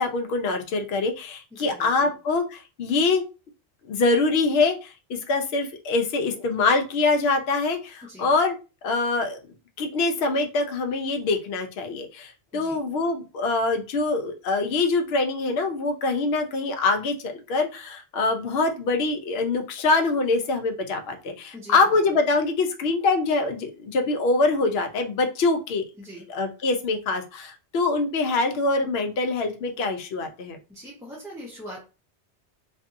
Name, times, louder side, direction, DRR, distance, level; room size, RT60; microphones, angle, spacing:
voice 1, 0.0-3.2 3.9-8.6 8.8-9.4 9.8-25.8 26.3-30.6, left 3 dB, 65° left, 5 dB, 0.8 m, -24 dB
voice 2, 1.5-2.1 8.0-8.3 12.5-12.8 21.5-22.2 26.0-26.3 30.7-31.8, equal, 5° right, -5 dB, 0.6 m, -42 dB
2.6 x 2.6 x 2.5 m, 0.30 s
omnidirectional pair, 1.1 m